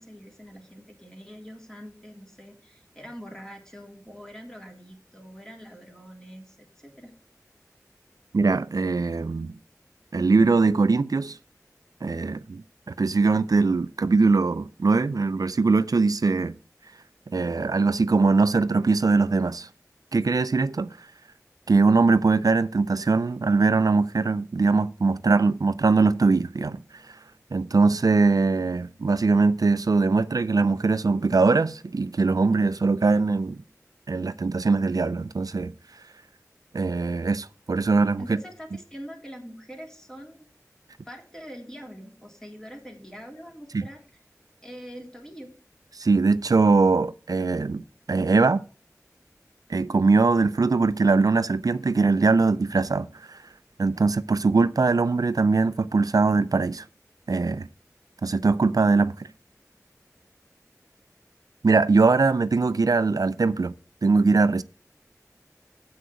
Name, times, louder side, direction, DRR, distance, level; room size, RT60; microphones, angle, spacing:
voice 1, 0.0-7.1 38.2-40.4 41.0-44.0 44.6-45.5, equal, 10° left, 3.1 m, -43 dB
voice 2, 8.3-9.5 10.1-11.4 12.0-12.6 13.0-16.5 17.3-19.7 20.1-21.1 21.7-27.2 27.5-33.6 34.1-35.7 36.7-38.4 43.7-43.8 45.9-47.8 48.1-48.6 49.7-53.4 53.8-56.9 57.3-57.7 58.2-59.3 61.6-63.7 64.0-64.6, right 4 dB, 85° right, 0.4 m, -21 dB
7.8 x 6.2 x 7.9 m
wide cardioid pair, 40°, 6 cm